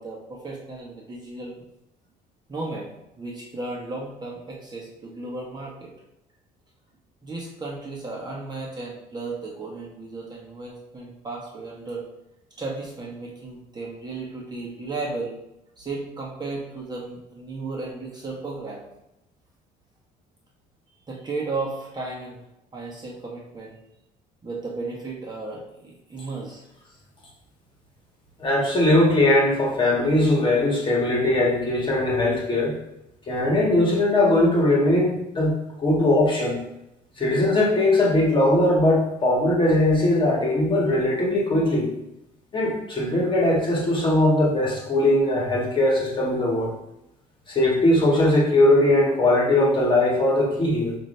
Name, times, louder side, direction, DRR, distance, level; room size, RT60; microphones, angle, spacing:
voice 1, 0.0-1.6 2.5-5.9 7.2-12.0 12.6-15.3 15.8-18.8 21.1-22.4 22.7-23.8 24.4-26.6, right 3 dB, 25° right, -3 dB, 1.1 m, -34 dB
voice 2, 28.4-32.7 33.3-35.5 35.8-36.6 37.2-41.9 42.5-46.7 47.5-51.0, left 1 dB, 30° left, -3 dB, 1.5 m, -20 dB
5.8 x 2.7 x 3.2 m, 0.87 s
cardioid pair, 110°, 17 cm